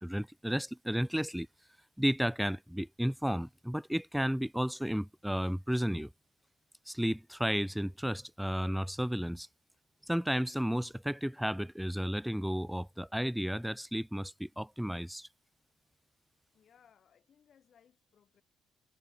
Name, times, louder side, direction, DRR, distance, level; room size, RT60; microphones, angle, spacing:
voice 1, 0.0-1.5 2.0-6.1 6.9-9.5 10.1-15.3, equal, ahead, 0.3 m, -33 dB
voice 2, 16.5-18.4, left 8 dB, 55° left, 6.5 m, -65 dB
cardioid pair, 90°, 0 cm